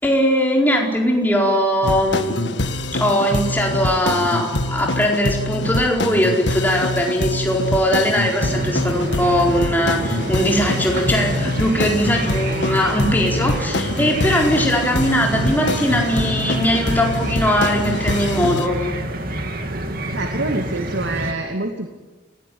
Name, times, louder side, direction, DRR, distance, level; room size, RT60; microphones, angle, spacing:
voice 1, 0.0-2.5 2.9-18.8, equal, 10° left, -1 dB, 4.5 m, -20 dB
sound 1, 1.8-18.7, left 1 dB, 75° left, 1.7 m, -25 dB
sound 2, 8.4-21.3, right 1 dB, 50° right, 2.6 m, -28 dB
voice 2, 20.1-21.9, right 2 dB, 80° right, 3 dB, 2.6 m, -25 dB
27.0 x 18.5 x 9.5 m, 1.2 s
head